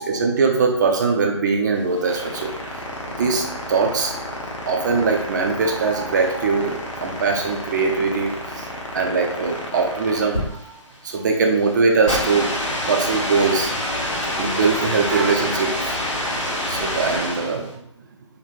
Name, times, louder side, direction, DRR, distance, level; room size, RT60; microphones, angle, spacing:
voice 1, 0.0-2.5 3.2-4.2 4.7-8.7 8.9-10.7 11.0-12.5 12.9-13.7 14.0-16.0 16.7-17.7, right 4 dB, 40° right, 2 dB, 0.4 m, -21 dB
sound 1, 1.8-17.7, left 1 dB, 80° left, 0.7 m, -28 dB
2.9 x 2.1 x 2.4 m, 0.74 s
figure-of-eight pair, 135°, 16 cm